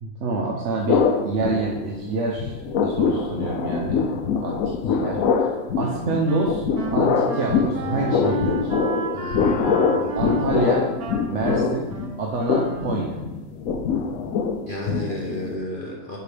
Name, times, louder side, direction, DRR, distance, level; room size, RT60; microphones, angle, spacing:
voice 1, 0.0-4.2 4.4-6.6 6.9-8.7 10.1-10.9 11.3-11.9 12.2-13.2, right 3 dB, 60° right, -1 dB, 1.1 m, -27 dB
sound 1, 0.9-2.1 2.4-15.5, left 5 dB, 70° left, 1.1 m, -24 dB
Wind instrument woodwind instrument, 5.8-13.2, right 2 dB, 85° right, 1.4 m, -32 dB
voice 2, 9.1-10.4 14.7-16.2, left 1 dB, 40° left, -2 dB, 1.0 m, -32 dB
11.5 x 5.1 x 3.4 m, 1.2 s
omnidirectional pair, 1.5 m